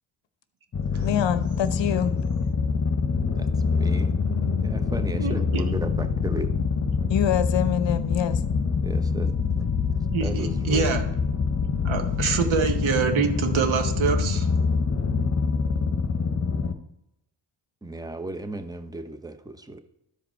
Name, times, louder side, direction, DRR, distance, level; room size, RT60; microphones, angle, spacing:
sound 1, 0.7-16.7, left 5 dB, 30° left, 1.0 m, -25 dB
voice 1, 1.0-2.1 7.1-8.4, left 10 dB, 60° left, 13 dB, 0.8 m, -25 dB
voice 2, 3.4-4.1 4.6-6.5 8.8-9.3 10.2-11.0 12.3-12.4 17.8-19.8, right 2 dB, 10° right, 9 dB, 0.8 m, -35 dB
voice 3, 5.2-5.6 10.1-11.0 11.8-14.5, right 6 dB, 70° right, 6 dB, 1.3 m, -25 dB
12.5 x 5.0 x 4.4 m, 0.83 s
cardioid pair, 60°, 50 cm